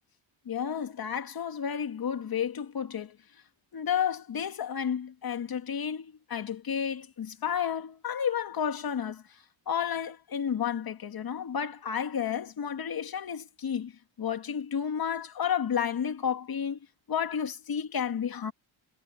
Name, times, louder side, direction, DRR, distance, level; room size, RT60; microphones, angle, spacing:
voice 1, 0.5-3.2 3.7-13.9 14.2-16.8 17.1-18.5, left 8 dB, 45° left, 2.2 m, -31 dB
cardioid pair, 100°, 48 cm